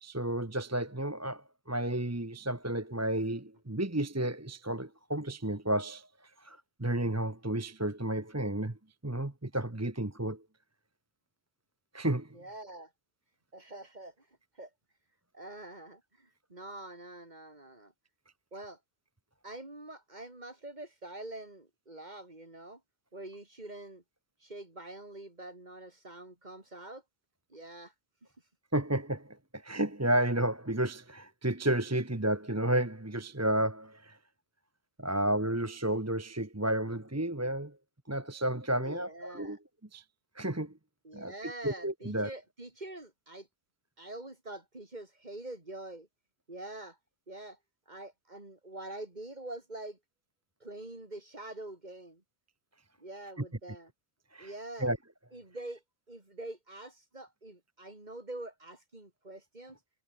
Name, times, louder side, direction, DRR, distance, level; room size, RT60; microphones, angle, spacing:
voice 1, 0.0-6.1 6.4-8.8 9.0-10.4 11.9-12.3 28.7-34.2 35.0-37.8 38.1-39.6 39.9-40.0 40.3-40.7 41.1-42.3 54.3-54.5 54.8-55.0, right 1 dB, 15° right, 1.3 m, -32 dB
voice 2, 12.3-12.9 13.5-14.3 14.5-14.7 15.3-17.9 18.5-18.8 19.4-22.8 23.1-24.0 24.4-27.0 27.5-27.9 38.8-39.6 41.0-43.5 44.0-46.1 46.5-47.0 47.3-47.6 47.9-50.0 50.6-52.2 53.0-53.9 54.4-54.9 55.3-55.8 56.1-59.8, right 2 dB, 40° right, 3.8 m, -45 dB
omnidirectional pair, 1.1 m